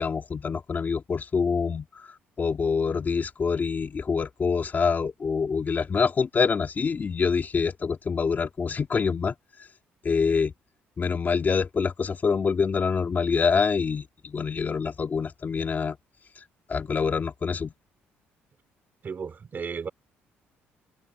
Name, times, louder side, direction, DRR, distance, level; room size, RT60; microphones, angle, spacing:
voice 1, 0.0-9.3 10.0-10.5 11.0-16.0 16.4-16.5 16.7-17.7, left 5 dB, 40° left, 2.5 m, -26 dB
voice 2, 19.0-19.9, right 6 dB, 40° right, 4.3 m, -34 dB
supercardioid pair, 80°, 5 cm